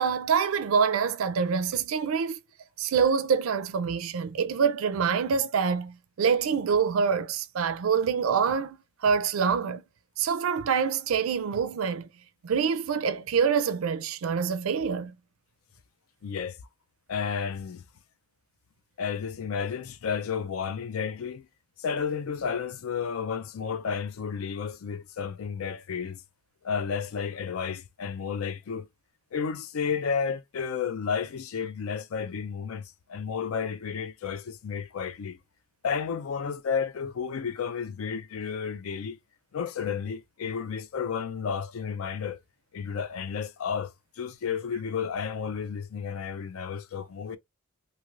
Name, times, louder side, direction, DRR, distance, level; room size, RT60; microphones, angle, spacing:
voice 1, 0.0-2.4 2.8-9.8 10.2-12.1 12.4-15.1, right 6 dB, 75° right, 0.4 m, -26 dB
voice 2, 16.2-16.6 17.1-17.8 19.0-21.5 21.8-26.2 26.6-28.9 29.3-35.4 35.8-39.2 39.5-42.4 42.7-47.4, left 6 dB, 85° left, 0.4 m, -32 dB
3.2 x 2.7 x 2.4 m
head